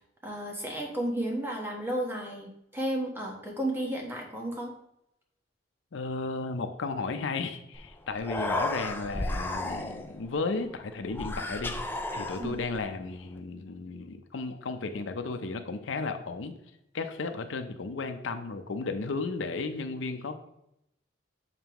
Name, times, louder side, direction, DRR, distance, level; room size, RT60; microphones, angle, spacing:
voice 1, 0.2-4.7 12.4-12.5, right 1 dB, 10° right, -1 dB, 1.2 m, -33 dB
voice 2, 5.9-11.7 12.1-16.5 16.9-20.3, left 3 dB, 85° left, 7 dB, 0.6 m, -34 dB
Human voice, 7.7-7.9 8.1-10.2 11.1-12.8, left 1 dB, 10° left, 0.4 m, -33 dB
6.5 x 5.3 x 3.0 m, 0.80 s
head